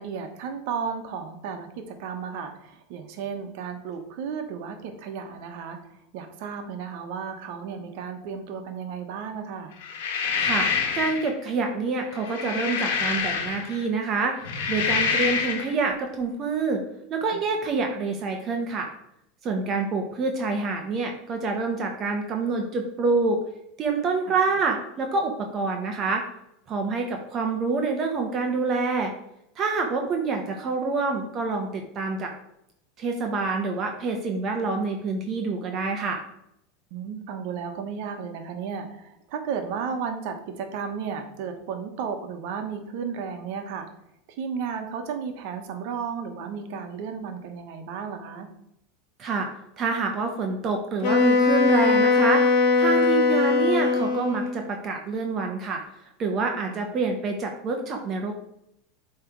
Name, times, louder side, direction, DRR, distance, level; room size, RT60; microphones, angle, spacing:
voice 1, 0.0-5.8 6.1-9.7 17.3-17.4 24.2-24.4 36.9-43.9 44.4-48.5 56.6-56.9, right 6 dB, 65° right, 6 dB, 1.2 m, -34 dB
sound 1, 9.8-11.3 12.1-13.8 14.3-15.7, left 6 dB, 80° left, 1.2 m, -26 dB
voice 2, 10.4-10.7 10.9-14.4 14.7-16.8 17.1-18.9 19.4-23.4 23.8-26.2 26.7-29.1 29.6-32.3 33.0-36.2 49.2-49.5 49.8-52.4 52.8-55.8 56.2-58.3, right 4 dB, 35° right, 3 dB, 1.0 m, -27 dB
Wind instrument woodwind instrument, 51.0-54.6, left 4 dB, 60° left, 1.4 m, -20 dB
7.8 x 3.3 x 4.6 m, 0.78 s
supercardioid pair, 130°, 0 cm